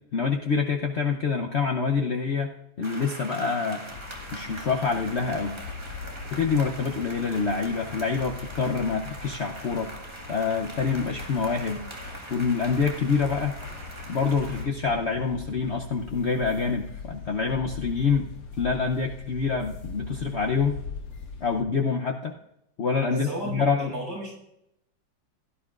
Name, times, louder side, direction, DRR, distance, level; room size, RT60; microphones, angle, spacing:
voice 1, 0.1-2.5 2.8-3.8 4.3-5.5 6.3-9.9 10.3-11.8 12.3-13.5 14.1-18.3 18.6-20.8 21.4-22.3 22.8-23.9, left 5 dB, 85° left, 2 dB, 0.5 m, -26 dB
sound 1, 2.8-14.7, right 1 dB, 15° right, 1.3 m, -42 dB
sound 2, 3.9-21.6, left 4 dB, 70° left, 2.0 m, -41 dB
voice 2, 23.1-24.3, right 1 dB, 65° right, -3 dB, 6.2 m, -33 dB
16.5 x 11.0 x 2.4 m, 0.80 s
omnidirectional pair, 2.1 m